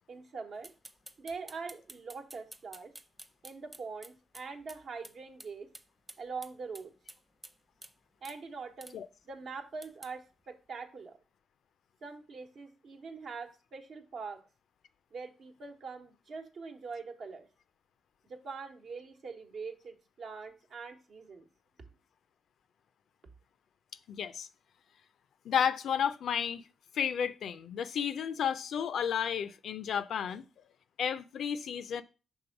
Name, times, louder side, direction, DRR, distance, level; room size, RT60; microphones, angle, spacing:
voice 1, 0.1-0.7 1.2-2.9 3.4-5.7 6.2-6.9 8.2-9.0 9.2-11.2 12.0-14.4 15.1-17.5 18.2-21.5, right 4 dB, 70° right, 1.0 m, -43 dB
sound 1, 0.6-4.8 5.0-5.1 5.4-5.5 5.7-7.6 7.8-7.9 8.2-8.4 8.8-9.0 9.8-10.1, right 1 dB, 20° right, 0.7 m, -50 dB
voice 2, 24.1-24.5 25.5-26.7 26.9-30.4 31.0-32.0, left 8 dB, 75° left, 0.4 m, -32 dB
5.4 x 3.5 x 5.8 m
supercardioid pair, 55°, 0 cm